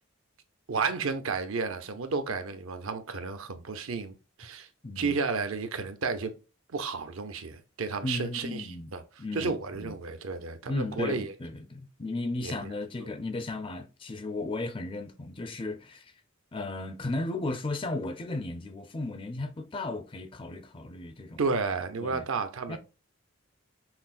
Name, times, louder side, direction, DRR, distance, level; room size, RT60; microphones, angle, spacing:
voice 1, 0.7-4.7 5.0-6.3 6.7-9.0 9.3-11.3 12.4-12.7 21.4-22.8, right 4 dB, 70° right, 0.6 m, -32 dB
voice 2, 4.8-5.2 8.0-8.9 9.2-10.0 10.7-16.1 16.5-21.4 22.0-22.3 22.7-22.8, left 2 dB, 25° left, 0.4 m, -35 dB
5.7 x 2.0 x 2.4 m
head